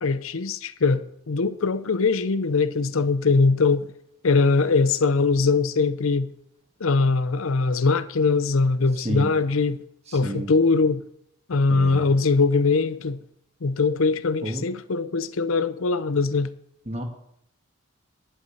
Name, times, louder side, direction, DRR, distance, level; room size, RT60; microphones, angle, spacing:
voice 1, 0.0-3.9 4.2-6.3 6.8-9.8 10.1-11.0 11.5-13.2 13.6-16.5, left 4 dB, 75° left, 0.6 m, -21 dB
voice 2, 10.1-10.5 11.7-12.1 14.4-14.6 16.9-17.0, right 1 dB, 30° right, 1.8 m, -30 dB
11.0 x 10.5 x 5.8 m
head